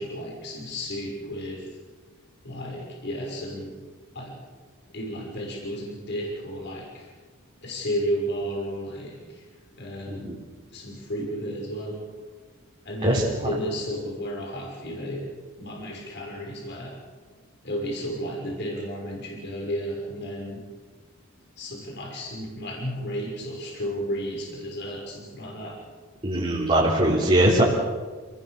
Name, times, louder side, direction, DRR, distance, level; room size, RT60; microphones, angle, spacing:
voice 1, 0.0-1.7 2.4-3.7 4.1-4.4 4.9-7.1 7.6-9.4 9.8-10.4 10.7-12.0 12.8-15.2 15.6-17.0 17.6-20.6 21.6-25.8, equal, 55° left, -1 dB, 6.3 m, -33 dB
voice 2, 13.0-13.5 26.2-27.6, right 1 dB, 30° right, -5 dB, 3.9 m, -21 dB
28.5 x 20.5 x 6.8 m, 1.4 s
head